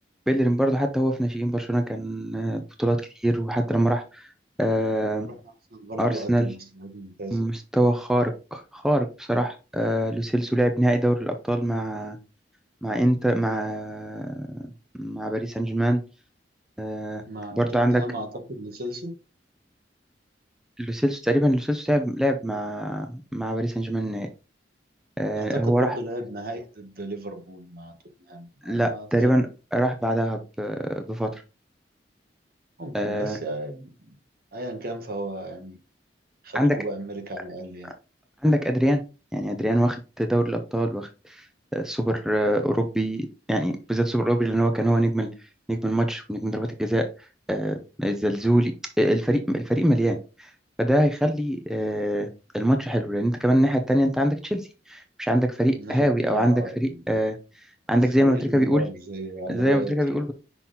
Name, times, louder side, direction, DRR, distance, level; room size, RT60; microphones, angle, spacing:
voice 1, 0.3-4.3 4.6-5.3 6.0-6.5 7.3-12.2 12.8-14.6 15.0-16.0 16.8-17.2 17.6-18.0 20.8-24.3 25.2-26.0 28.6-29.4 29.7-31.4 32.9-33.4 36.5-36.8 38.4-39.0 39.3-41.5 41.7-45.3 45.7-47.1 47.5-50.5 50.8-52.3 52.5-57.4 57.9-58.8 59.5-60.3, equal, 5° right, 0.6 m, -24 dB
voice 2, 5.7-7.4 17.3-19.1 25.4-27.9 28.2-29.3 32.8-34.2 34.5-35.8 36.4-37.9 55.7-57.0 58.2-60.2, right 1 dB, 60° right, 1.4 m, -35 dB
5.8 x 4.1 x 4.0 m
head